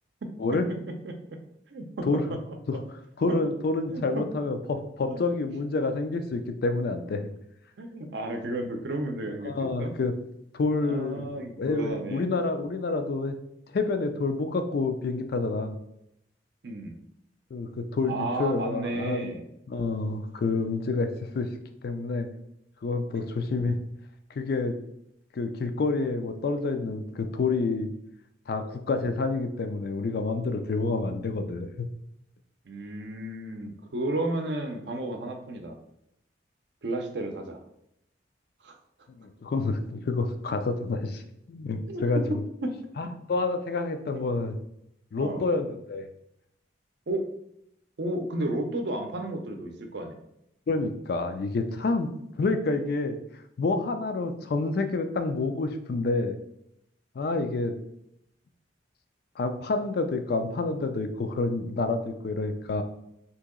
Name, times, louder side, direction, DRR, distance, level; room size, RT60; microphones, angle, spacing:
voice 1, 1.7-2.1 3.3-3.4 3.9-4.2 5.1-5.2 7.8-9.9 10.8-12.3 16.6-17.0 18.1-19.4 32.6-35.8 36.8-37.6 38.6-38.8 41.9-42.0 42.6-42.7 45.2-45.4 47.1-47.3 48.0-50.2, right 1 dB, 65° right, 4 dB, 0.5 m, -32 dB
voice 2, 3.2-7.3 9.4-10.1 10.5-13.3 13.7-15.7 17.5-19.3 19.7-21.5 21.8-22.3 22.8-23.8 24.4-24.7 25.3-27.9 28.5-31.9 39.1-41.2 41.5-42.4 43.0-44.5 45.1-46.1 50.7-52.1 52.4-53.2 53.6-56.4 57.2-57.7 59.4-62.8, left 3 dB, 55° left, 8 dB, 0.4 m, -28 dB
2.9 x 2.7 x 3.6 m, 0.78 s
head